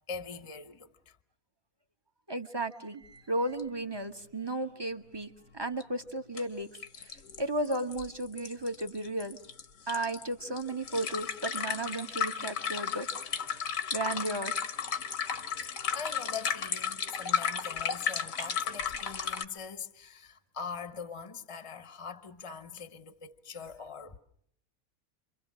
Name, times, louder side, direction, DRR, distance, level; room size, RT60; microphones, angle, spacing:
voice 1, 0.1-1.2 15.6-24.2, left 6 dB, 25° left, 1.1 m, -42 dB
voice 2, 2.3-6.7 7.0-9.4 9.9-13.1 13.9-14.6, right 1 dB, 20° right, 1.2 m, -34 dB
sound 1, 3.6-3.7 3.9-4.0 5.8-5.9 6.4-6.5 6.7-19.4, left 7 dB, 65° left, 1.6 m, -34 dB
29.0 x 24.0 x 6.2 m
omnidirectional pair, 1.5 m